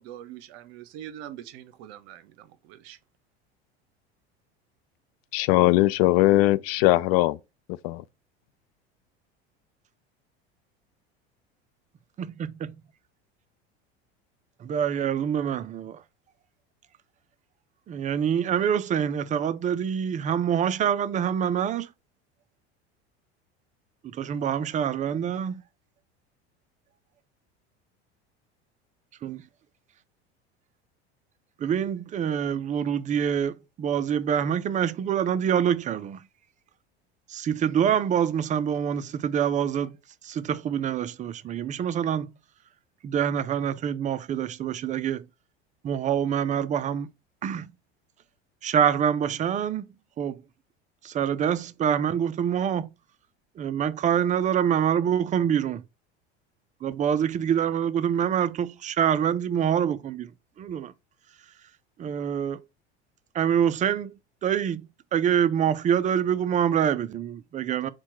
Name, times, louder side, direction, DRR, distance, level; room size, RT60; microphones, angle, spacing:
voice 1, 0.0-3.0, right 11 dB, 65° right, 0.7 m, -43 dB
voice 2, 5.3-7.4 7.8-8.0, left 17 dB, 60° left, 0.5 m, -20 dB
voice 3, 12.2-12.7 14.6-16.0 17.9-21.9 24.1-25.6 29.2-29.4 31.6-36.2 37.3-40.0 40.2-42.3 43.0-45.3 45.8-47.1 47.4-47.7 48.6-49.9 50.2-50.4 51.0-52.9 53.6-55.8 56.8-60.3 60.6-60.9 62.0-62.6 63.3-64.1 64.4-64.8 65.1-67.9, right 8 dB, 25° right, 0.4 m, -26 dB
4.4 x 2.2 x 4.3 m
hypercardioid pair, 80°, 33 cm